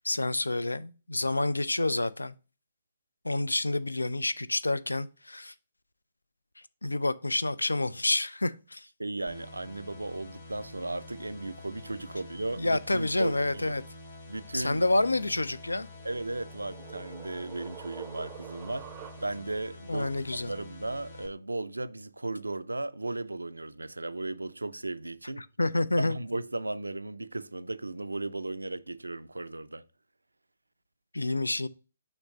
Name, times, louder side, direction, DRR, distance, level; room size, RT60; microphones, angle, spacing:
voice 1, 0.0-2.3 3.2-5.5 6.8-8.9 12.6-13.8 14.5-15.9 19.9-20.5 25.4-26.2 31.1-31.7, left 2 dB, 80° left, 0.4 m, -28 dB
voice 2, 9.0-13.7 14.3-14.8 16.0-25.4 26.0-29.8, right 2 dB, 80° right, 0.4 m, -36 dB
sound 1, 9.3-21.3, left 2 dB, 55° left, 2.0 m, -47 dB
sound 2, 15.8-19.6, right 13 dB, 25° right, 0.5 m, -47 dB
6.5 x 3.1 x 5.1 m
figure-of-eight pair, 130°, 0 cm